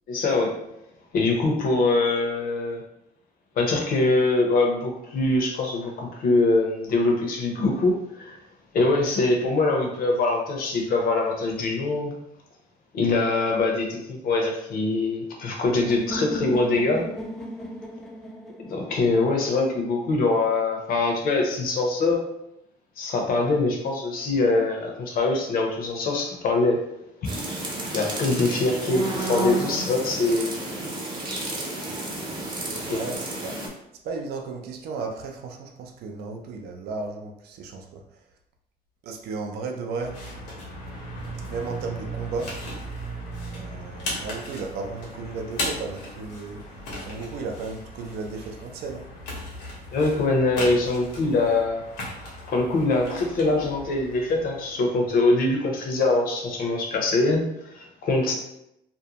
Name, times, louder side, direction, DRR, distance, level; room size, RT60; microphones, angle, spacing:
voice 1, 0.1-0.5 1.1-2.8 3.6-8.4 8.7-12.1 12.9-17.0 18.7-22.2 23.0-26.8 27.2-27.3 27.9-30.6 32.9-33.0 49.9-51.8 52.5-58.3, left 2 dB, 60° left, 1 dB, 0.7 m, -23 dB
sound 1, 15.9-19.8, equal, ahead, 0.3 m, -36 dB
sound 2, 27.2-33.7, right 2 dB, 25° right, 0.7 m, -31 dB
voice 2, 32.8-33.6 34.0-38.2 39.0-40.2 41.5-42.5 43.5-49.1, right 4 dB, 70° right, 2 dB, 0.4 m, -34 dB
sound 3, 40.0-55.3, equal, 85° left, 1.0 m, -37 dB
2.6 x 2.1 x 2.8 m, 0.82 s
cardioid pair, 110°, 17 cm